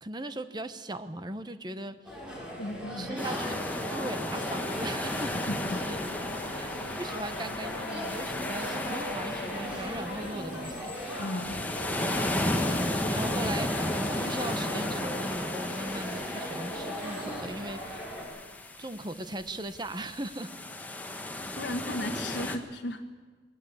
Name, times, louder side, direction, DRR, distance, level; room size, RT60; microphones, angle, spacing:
voice 1, 0.0-2.2 3.0-3.6 3.9-5.5 5.9-10.9 13.0-18.0 18.8-20.5, right 1 dB, 25° right, 11 dB, 1.0 m, -39 dB
sound 1, 2.0-18.2, equal, 5° right, 5.5 m, -38 dB
voice 2, 2.6-3.2 5.3-5.8 11.2-11.6 21.6-23.2, left 1 dB, 75° left, 2 dB, 1.3 m, -35 dB
sound 2, 3.2-22.6, left 1 dB, 10° left, 1.6 m, -34 dB
sound 3, 5.0-10.9, left 1 dB, 45° left, 1.5 m, -44 dB
20.5 x 19.0 x 8.6 m, 1.4 s
head